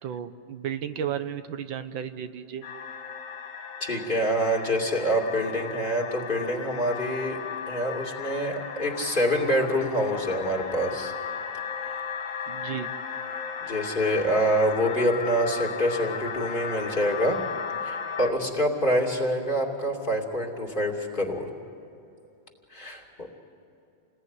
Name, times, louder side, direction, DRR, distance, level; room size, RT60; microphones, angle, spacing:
voice 1, 0.0-2.6 12.5-12.9, right 9 dB, 90° right, 10 dB, 1.8 m, -33 dB
sound 1, 2.6-18.3, left 6 dB, 50° left, 1.4 m, -36 dB
voice 2, 3.8-7.4 7.7-11.1 13.6-17.4 17.8-21.5 22.7-23.3, equal, 25° left, 0 dB, 2.8 m, -26 dB
29.0 x 20.0 x 9.6 m, 2.7 s
omnidirectional pair, 2.1 m